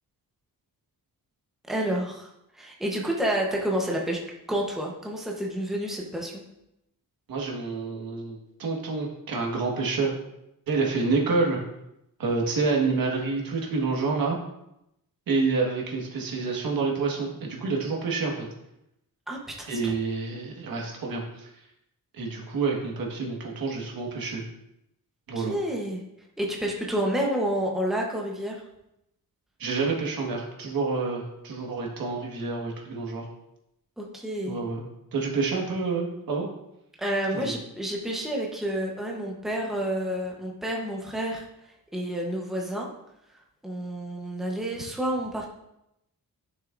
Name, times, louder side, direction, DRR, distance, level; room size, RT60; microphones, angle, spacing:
voice 1, 1.7-4.2 4.5-6.4 19.3-19.9 25.4-26.0 26.4-28.6 34.0-34.6 37.0-41.5 41.9-42.9 43.6-45.5, right 1 dB, ahead, -2 dB, 0.9 m, -29 dB
voice 2, 7.3-10.1 10.7-11.6 12.2-14.4 15.3-18.5 19.7-21.5 22.1-24.4 25.3-25.5 29.6-33.2 34.5-34.9 35.1-36.5 37.3-37.5, right 4 dB, 75° right, 0 dB, 1.7 m, -28 dB
11.0 x 6.2 x 2.5 m, 0.84 s
wide cardioid pair, 180°, 35 cm